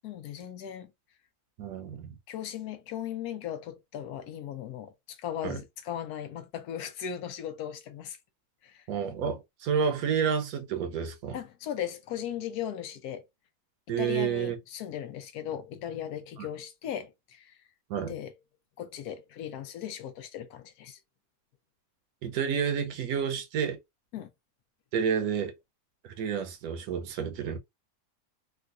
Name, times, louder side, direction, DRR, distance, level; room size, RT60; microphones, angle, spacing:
voice 1, 0.0-0.9 1.9-2.0 2.3-8.2 8.6-8.9 11.3-13.3 13.9-17.6 18.1-18.3 18.8-21.0 24.1-24.3, left 10 dB, 90° left, 1.2 m, -37 dB
voice 2, 1.6-2.2 5.4-5.6 8.9-11.4 13.9-14.6 16.4-16.5 17.9-18.1 22.2-23.8 24.9-25.5 26.0-27.6, right 7 dB, 80° right, 1.2 m, -30 dB
3.7 x 2.3 x 2.5 m
omnidirectional pair, 1.6 m